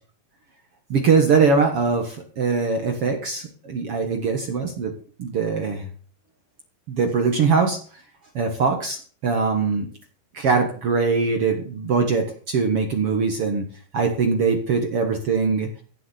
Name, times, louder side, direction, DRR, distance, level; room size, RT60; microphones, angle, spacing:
voice 1, 0.9-5.9 6.9-7.8 8.3-9.9 10.3-15.7, right 5 dB, 60° right, 5 dB, 1.5 m, -22 dB
16.5 x 7.6 x 7.1 m, 0.43 s
omnidirectional pair, 4.9 m